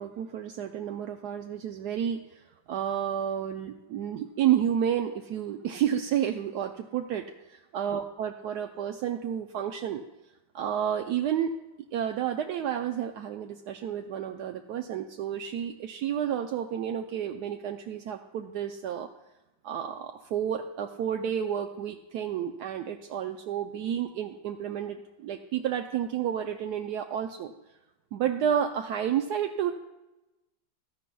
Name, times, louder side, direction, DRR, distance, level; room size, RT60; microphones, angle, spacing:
voice 1, 0.0-10.0 10.5-11.5 11.9-19.1 19.6-27.5 28.1-29.7, right 9 dB, 75° right, 5 dB, 1.1 m, -31 dB
16.0 x 13.0 x 2.3 m, 0.99 s
omnidirectional pair, 1.8 m